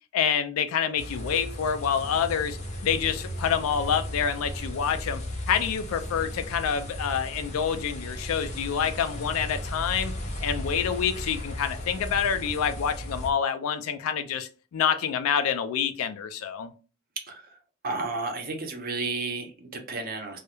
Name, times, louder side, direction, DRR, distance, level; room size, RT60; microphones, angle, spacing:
voice 1, 0.1-10.1 10.4-16.7, left 7 dB, 80° left, 0.3 m, -27 dB
sound 1, 1.0-13.3, equal, 35° left, 0.5 m, -36 dB
voice 2, 17.8-20.4, right 3 dB, 45° right, 0.6 m, -32 dB
2.3 x 2.0 x 2.9 m
head